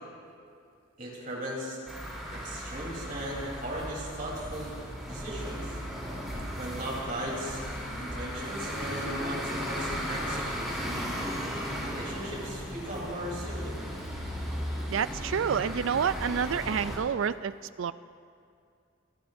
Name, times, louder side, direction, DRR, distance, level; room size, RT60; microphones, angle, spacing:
voice 1, 1.0-1.8 2.3-4.7 5.1-5.8 6.6-7.6 8.0-11.0 11.8-13.8, right 1 dB, 45° right, -3 dB, 3.7 m, -37 dB
sound 1, 1.9-17.0, equal, ahead, 3.4 m, -36 dB
voice 2, 14.9-17.9, right 7 dB, 80° right, 16 dB, 0.4 m, -29 dB
25.0 x 17.5 x 2.7 m, 2.4 s
head